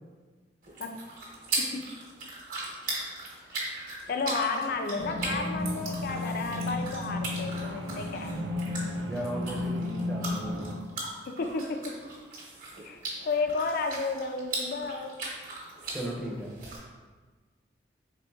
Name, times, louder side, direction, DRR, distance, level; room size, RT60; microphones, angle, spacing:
sound 1, 0.6-16.8, right 2 dB, 50° right, 1.0 m, -39 dB
voice 1, 4.1-8.5 11.3-12.0 12.8-13.0 13.2-15.1, left 4 dB, 55° left, 5 dB, 0.4 m, -32 dB
sound 2, 5.0-10.7, left 2 dB, 80° right, 0.5 m, -33 dB
voice 2, 9.1-10.8 15.9-16.5, equal, ahead, -3 dB, 0.5 m, -36 dB
4.2 x 3.5 x 2.3 m, 1.4 s
head